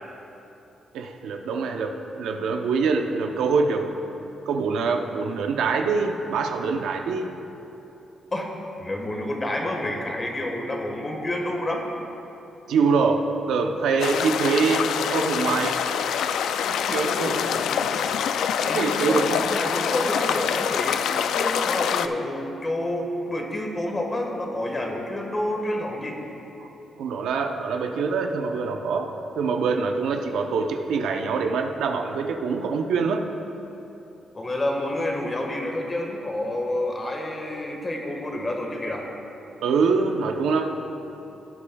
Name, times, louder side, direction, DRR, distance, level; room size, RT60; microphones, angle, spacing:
voice 1, 0.9-3.9 4.5-7.3 12.7-15.8 16.9-17.4 18.6-19.4 26.6-26.7 27.0-33.2 39.6-41.0, right 4 dB, 85° right, 4 dB, 0.7 m, -24 dB
voice 2, 8.8-11.9 16.9-18.2 18.6-19.2 19.5-21.0 21.3-26.2 34.3-39.1, left 1 dB, 25° left, 1 dB, 1.5 m, -29 dB
sound 1, 14.0-22.1, left 8 dB, 80° left, 0.3 m, -25 dB
17.0 x 8.6 x 2.3 m, 3.0 s
cardioid pair, 95°, 0 cm